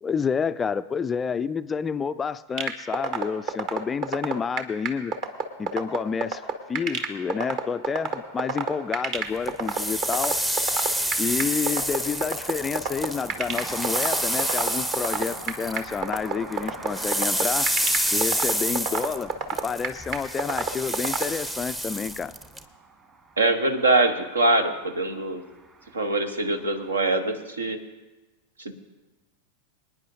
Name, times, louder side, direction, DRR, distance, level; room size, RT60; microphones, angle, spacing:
voice 1, 0.0-5.2 5.6-6.4 6.7-10.4 11.2-17.7 18.1-19.3 19.6-22.3, left 6 dB, 20° left, 14 dB, 0.3 m, -29 dB
sound 1, 2.6-21.2, right 6 dB, 40° right, 1.1 m, -27 dB
sound 2, 8.1-26.9, right 4 dB, 25° right, 1.6 m, -45 dB
sound 3, 9.5-16.3 16.5-22.6, equal, 5° right, 0.7 m, -28 dB
voice 2, 23.4-25.4 25.9-27.8 28.6-28.7, right 2 dB, 75° right, 10 dB, 1.0 m, -23 dB
25.5 x 9.5 x 2.7 m, 1.1 s
figure-of-eight pair, 90°, 0 cm